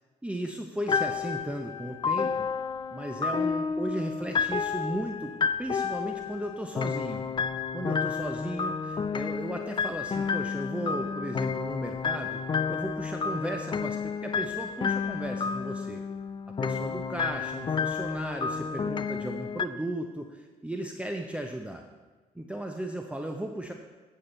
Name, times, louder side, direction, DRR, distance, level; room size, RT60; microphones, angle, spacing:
voice 1, 0.2-2.5 2.9-7.2 7.7-12.4 12.7-16.0 16.6-21.8 22.3-23.7, right 1 dB, 5° right, 3 dB, 0.7 m, -35 dB
sound 1, 0.9-19.7, left 5 dB, 25° left, 0.4 m, -31 dB
8.7 x 5.5 x 4.3 m, 1.3 s
hypercardioid pair, 50°, 18 cm